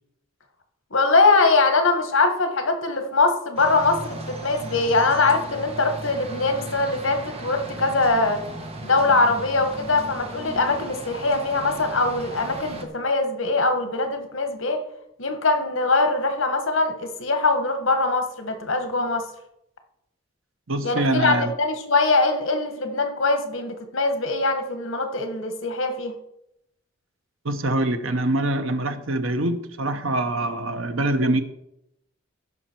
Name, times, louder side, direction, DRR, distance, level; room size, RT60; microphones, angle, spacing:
voice 1, 0.9-8.4 8.8-14.8 15.2-19.2 20.8-26.1, left 3 dB, 75° left, 7 dB, 1.5 m, -22 dB
sound 1, 3.6-12.9, right 2 dB, 30° right, 1.2 m, -36 dB
voice 2, 20.7-21.5 27.4-31.4, right 2 dB, 80° right, 8 dB, 1.0 m, -24 dB
16.0 x 5.8 x 4.5 m, 0.81 s
head